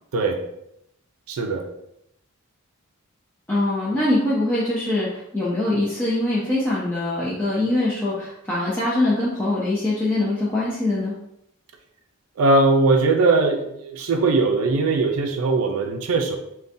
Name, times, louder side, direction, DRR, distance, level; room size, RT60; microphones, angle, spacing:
voice 1, 1.3-1.7 12.4-16.4, right 3 dB, 80° right, 4 dB, 0.4 m, -20 dB
voice 2, 3.5-11.2, left 1 dB, 10° left, -9 dB, 0.4 m, -23 dB
3.7 x 2.2 x 2.6 m, 0.78 s
head